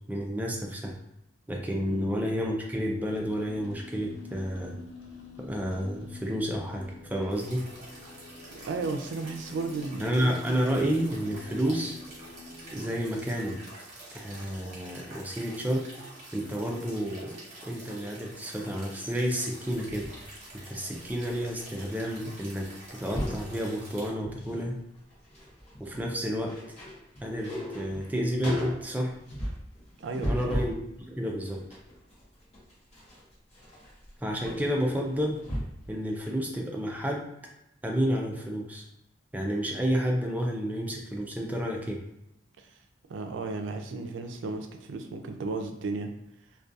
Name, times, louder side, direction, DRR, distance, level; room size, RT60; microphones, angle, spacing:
voice 1, 0.1-0.9 1.5-4.8 5.4-7.6 10.0-12.0 12.7-13.6 14.1-15.9 16.3-20.1 20.5-24.8 25.8-26.6 27.2-29.1 30.3-30.8 31.1-31.6 34.2-35.4 35.9-37.3 37.8-38.8 39.3-42.0, equal, 10° right, 0 dB, 0.4 m, -30 dB
sound 1, 3.1-13.3, left 3 dB, 75° left, 0.5 m, -47 dB
sound 2, 7.3-24.1, right 1 dB, 40° right, 1.0 m, -47 dB
voice 2, 8.5-10.2 30.0-30.5 42.6-42.8 43.1-46.1, right 3 dB, 90° right, 5 dB, 0.4 m, -34 dB
sound 3, 19.7-21.8 22.1-22.4 22.7-23.5 24.0-24.7 25.0-30.8 31.3-35.9 36.3-36.4, left 1 dB, 40° left, 0.8 m, -37 dB
2.3 x 2.2 x 2.6 m, 0.83 s
head